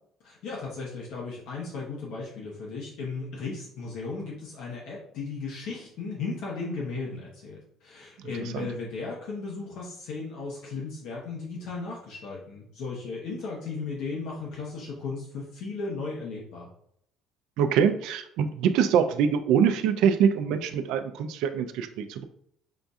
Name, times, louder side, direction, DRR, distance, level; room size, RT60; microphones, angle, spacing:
voice 1, 0.2-16.7, left 4 dB, 70° left, -4 dB, 1.0 m, -36 dB
voice 2, 17.6-22.3, right 7 dB, 75° right, 9 dB, 0.4 m, -24 dB
5.8 x 2.6 x 2.4 m, 0.70 s
cardioid pair, 145°, 0 cm